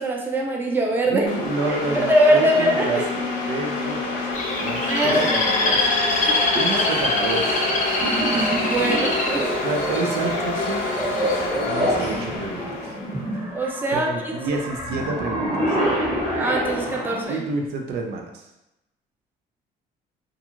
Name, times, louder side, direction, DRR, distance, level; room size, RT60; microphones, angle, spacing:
voice 1, 0.0-1.3 1.7-3.0 4.8-5.3 6.3-6.8 8.6-9.5 13.5-14.1 14.5-14.6 16.4-17.4, right 1 dB, 10° right, 0 dB, 0.4 m, -22 dB
voice 2, 1.1-4.2 4.6-6.0 6.5-7.7 9.6-10.9 11.6-12.9 13.9-15.8 17.3-18.5, right 3 dB, 75° right, 2 dB, 0.5 m, -29 dB
sound 1, 1.3-13.6, left 2 dB, 90° left, 0.6 m, -27 dB
Bird, 4.3-10.4 11.0-11.4, left 2 dB, 45° left, 0.6 m, -24 dB
sound 2, 8.0-17.2, right 1 dB, 35° right, 1.1 m, -28 dB
2.4 x 2.3 x 2.9 m, 0.90 s
cardioid pair, 110°, 17 cm